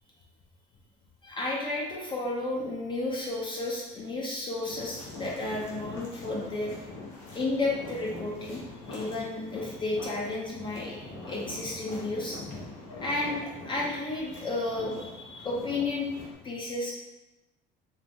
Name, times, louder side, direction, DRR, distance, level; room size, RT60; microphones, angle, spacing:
voice 1, 1.2-6.8 7.3-12.4 13.0-16.1 16.4-16.9, left 2 dB, 25° left, -3 dB, 0.5 m, -32 dB
sound 1, 4.7-16.3, left 2 dB, 85° left, 0.9 m, -43 dB
2.7 x 2.0 x 3.4 m, 1.0 s
cardioid pair, 130°, 19 cm